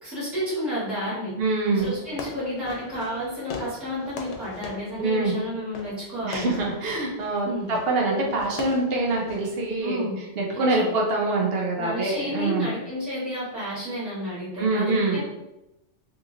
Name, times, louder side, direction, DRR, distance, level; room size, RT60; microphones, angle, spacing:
voice 1, 0.0-1.3 1.8-6.5 7.4-7.7 9.8-10.2 10.5-10.9 11.8-15.2, equal, ahead, -12 dB, 1.4 m, -31 dB
voice 2, 1.4-1.9 5.0-5.3 6.2-10.1 10.4-12.7 14.6-15.2, right 2 dB, 60° right, -1 dB, 0.8 m, -25 dB
Fireworks, 1.8-9.8, left 4 dB, 85° left, 0.9 m, -41 dB
3.0 x 2.7 x 2.4 m, 0.93 s
omnidirectional pair, 1.2 m